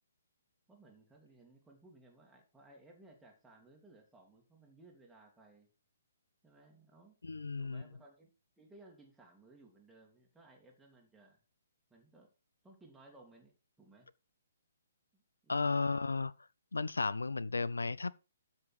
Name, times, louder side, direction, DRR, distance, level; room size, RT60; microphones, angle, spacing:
voice 1, 0.7-5.7 6.4-7.2 7.6-8.3 8.6-11.4 11.9-12.3 12.6-13.5 13.8-14.1 15.1-16.0, right 2 dB, 5° right, 2.5 m, -60 dB
voice 2, 7.2-7.8 15.5-16.3 16.7-18.1, left 3 dB, 70° left, 0.4 m, -34 dB
12.5 x 5.5 x 4.6 m
figure-of-eight pair, 130°, 0 cm